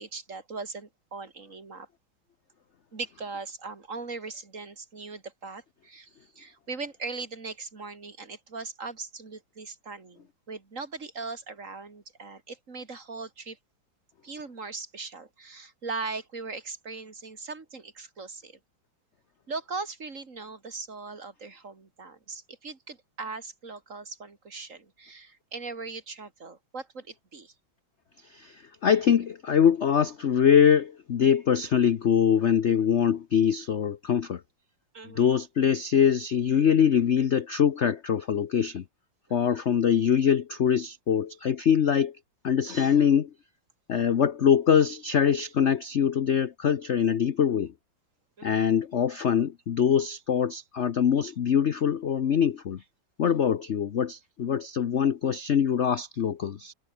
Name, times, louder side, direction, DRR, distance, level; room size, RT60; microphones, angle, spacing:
voice 1, 0.0-1.9 2.9-13.6 14.2-18.6 19.5-27.5 34.9-35.4 39.3-39.6 48.4-48.7, right 4 dB, 40° right, 2.7 m, -39 dB
voice 2, 28.2-34.4 35.0-38.8 39.3-42.2 42.4-43.3 43.9-47.7 48.4-52.8 53.2-56.7, left 8 dB, 50° left, 0.8 m, -23 dB
omnidirectional pair, 2.1 m